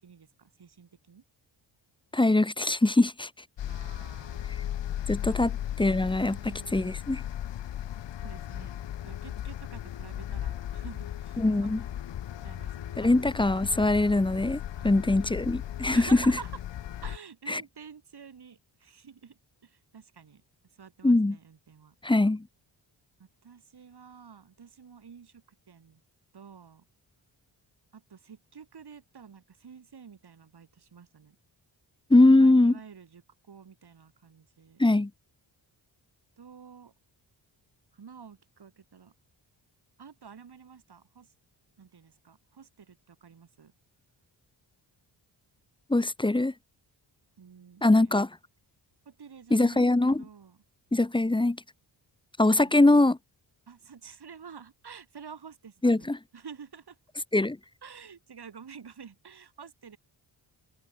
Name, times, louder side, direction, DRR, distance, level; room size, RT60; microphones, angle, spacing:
voice 1, 0.0-1.2 3.7-4.6 5.1-5.5 6.2-6.9 8.2-8.7 9.0-11.9 12.4-13.2 14.8-15.0 15.9-16.6 17.0-20.4 20.7-21.9 23.2-26.0 26.3-26.8 27.9-31.4 32.3-34.8 36.4-36.9 37.9-39.1 40.0-41.3 41.8-43.7 47.4-48.1 49.0-50.6 52.4-52.9 53.7-57.0 57.8-60.0, right 6 dB, 55° right, 6.2 m, -49 dB
voice 2, 2.1-3.3 5.1-5.5 5.8-7.2 11.4-11.8 13.0-16.1 17.5-17.6 21.0-21.4 22.0-22.5 32.1-32.7 34.8-35.1 45.9-46.5 47.8-48.3 49.5-50.2 50.9-51.6 52.4-53.2 55.8-56.2 57.3-57.6, left 2 dB, 10° left, 0.8 m, -22 dB
sound 1, 3.6-17.2, left 11 dB, 70° left, 1.0 m, -36 dB
cardioid pair, 95°, 45 cm